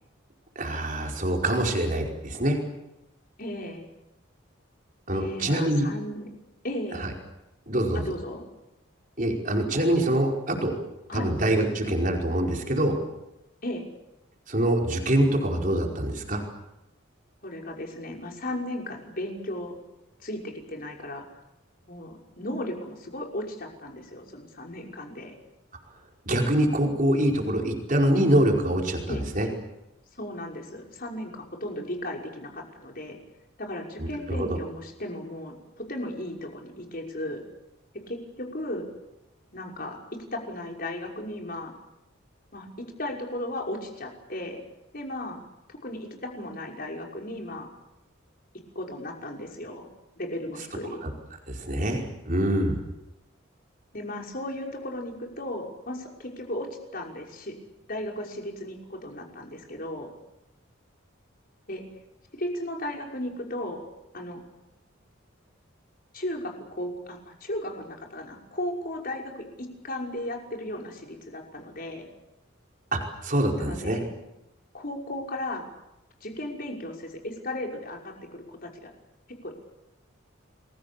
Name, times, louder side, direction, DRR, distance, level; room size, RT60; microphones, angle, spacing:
voice 1, 0.5-2.6 5.1-5.8 7.0-7.1 7.7-8.1 9.2-10.7 11.1-13.0 14.5-16.4 26.2-29.5 34.0-34.6 51.0-51.1 51.5-52.8 72.9-74.0, right 1 dB, 40° right, 1 dB, 5.0 m, -25 dB
voice 2, 3.4-3.8 5.1-6.3 6.6-7.0 7.9-8.4 9.9-10.0 11.1-11.3 13.6-13.8 17.4-19.7 20.2-21.3 21.9-25.3 29.1-29.2 30.2-33.2 33.6-37.4 38.1-38.9 39.5-41.7 42.5-44.6 44.9-45.4 45.7-47.7 48.7-49.9 50.2-51.1 53.9-56.7 56.9-57.5 57.9-60.1 61.7-61.9 62.3-63.8 64.1-64.4 66.1-72.1 73.6-74.0 74.7-75.7 76.2-78.9 79.4-79.5, left 1 dB, 45° left, 1 dB, 5.7 m, -35 dB
29.5 x 22.5 x 7.1 m, 0.92 s
head